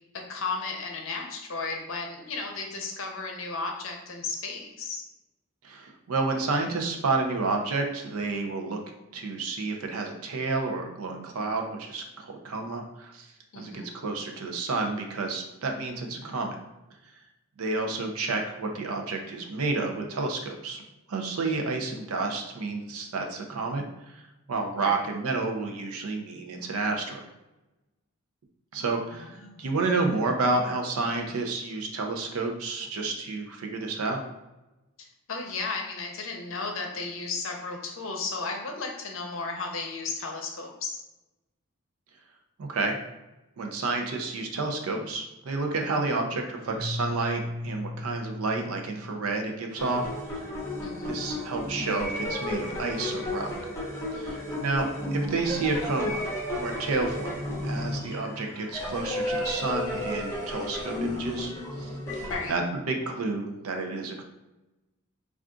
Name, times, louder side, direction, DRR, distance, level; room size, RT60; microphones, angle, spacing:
voice 1, 0.3-5.0 13.5-13.9 24.7-25.0 29.3-29.7 35.3-41.0 50.8-51.2 62.2-62.6, left 4 dB, 65° left, 2 dB, 0.6 m, -34 dB
voice 2, 5.6-8.8 9.1-13.3 13.6-16.6 17.6-20.8 21.1-23.8 24.1-24.2 24.5-27.2 28.7-34.2 42.6-43.0 43.6-50.1 51.1-53.6 54.1-56.2 56.5-61.5 61.8-61.9 62.5-64.2, right 3 dB, 85° right, 3 dB, 0.5 m, -30 dB
Keyboard (musical), 46.6-49.8, left 1 dB, 40° right, 0.6 m, -36 dB
sound 1, 49.7-62.5, left 1 dB, 10° left, 0.7 m, -33 dB
2.4 x 2.3 x 3.7 m, 0.99 s
head